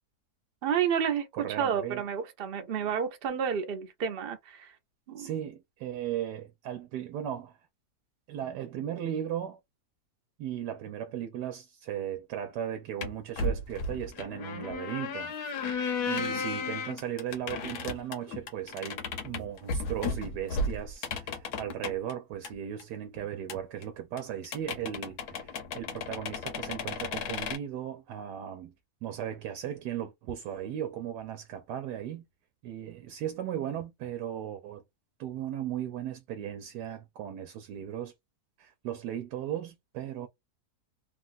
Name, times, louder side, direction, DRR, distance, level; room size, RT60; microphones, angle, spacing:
voice 1, 0.6-4.7 5.1-5.3 16.1-16.4, right 8 dB, 50° right, 0.7 m, -31 dB
voice 2, 1.4-2.0 5.2-7.6 8.3-9.6 10.4-15.3 16.1-28.7 29.0-32.3 32.6-34.8 35.2-38.1 38.6-40.3, right 10 dB, 80° right, 1.2 m, -37 dB
sound 1, 13.0-22.1 22.4-22.5 22.8-22.9 23.2-23.3 23.5-23.6 23.8-23.9 24.2-24.3 24.4-27.6, left 3 dB, 75° left, 1.3 m, -34 dB
3.2 x 2.3 x 2.5 m
omnidirectional pair, 1.8 m